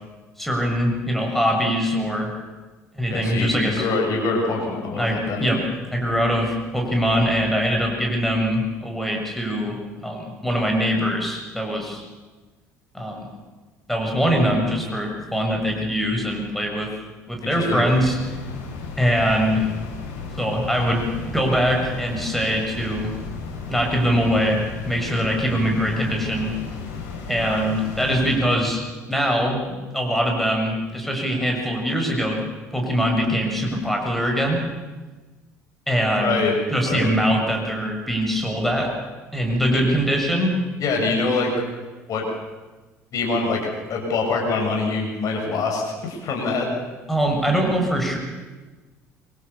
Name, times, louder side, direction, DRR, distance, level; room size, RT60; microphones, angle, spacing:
voice 1, 0.4-2.3 2.9-3.8 4.9-5.6 5.9-9.8 10.0-12.0 12.9-13.3 13.9-16.9 17.3-18.2 19.0-19.7 20.4-23.1 23.7-24.6 24.8-26.5 27.3-28.8 29.1-29.6 29.9-32.4 32.7-34.6 35.9-36.4 36.7-38.9 39.3-40.5 47.1-48.2, equal, ahead, 1 dB, 6.8 m, -22 dB
voice 2, 3.1-5.5 17.5-17.8 36.2-36.5 36.8-37.1 39.7-39.8 40.8-41.5 42.1-42.2 43.1-46.7, left 3 dB, 45° left, 0 dB, 7.0 m, -24 dB
sound 1, 17.8-28.4, left 4 dB, 65° left, 6.6 m, -34 dB
25.5 x 24.0 x 7.0 m, 1.3 s
figure-of-eight pair, 60°, 8 cm